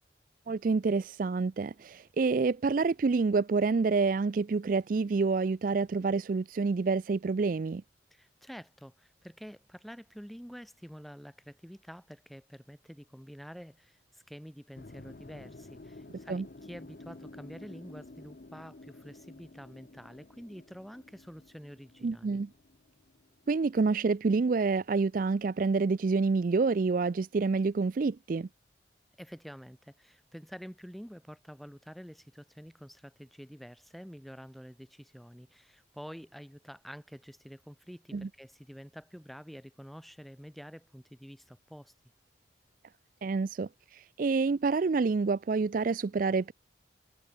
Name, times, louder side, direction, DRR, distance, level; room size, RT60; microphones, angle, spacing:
voice 1, 0.5-7.8 16.3-16.5 22.0-22.5 23.5-28.5 38.1-38.3 43.2-46.5, right 4 dB, 45° right, 0.4 m, -28 dB
voice 2, 8.1-22.4 29.2-41.9, equal, ahead, 2.7 m, -48 dB
sound 1, 14.8-24.9, left 2 dB, 50° left, 0.7 m, -51 dB
head